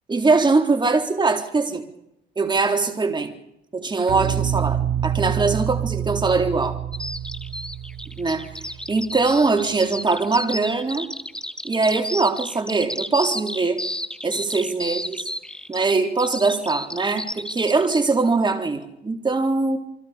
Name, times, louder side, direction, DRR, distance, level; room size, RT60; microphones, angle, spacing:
voice 1, 0.1-1.8 2.4-3.3 3.7-6.8 8.2-8.5 8.9-11.1 11.6-13.8 14.2-15.2 15.7-19.8, right 3 dB, 25° right, 4 dB, 3.8 m, -22 dB
sound 1, 4.1-9.3, right 10 dB, 90° right, 5.3 m, -27 dB
Bird vocalization bird call bird song, 6.9-18.1, left 1 dB, 5° left, 2.1 m, -32 dB
29.0 x 24.5 x 5.2 m, 0.81 s
cardioid pair, 90°, 19 cm